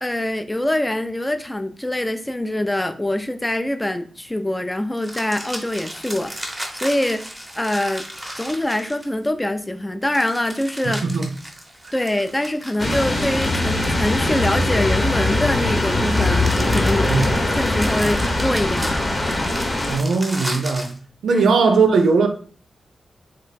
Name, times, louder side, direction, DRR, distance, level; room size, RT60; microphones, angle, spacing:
voice 1, 0.0-7.2 7.5-8.0 8.4-11.0 11.9-17.1 17.5-19.0 21.3-21.4, left 1 dB, 15° left, 0.3 m, -24 dB
sound 1, 5.0-9.3 10.1-15.0 15.7-21.0, equal, 10° right, 0.8 m, -34 dB
voice 2, 10.8-11.3 17.0-17.4 19.9-20.9 21.2-22.3, right 4 dB, 90° right, 0.4 m, -18 dB
sound 2, 12.8-20.0, left 2 dB, 35° left, 0.9 m, -21 dB
3.0 x 2.1 x 4.0 m
cardioid pair, 80°, 0 cm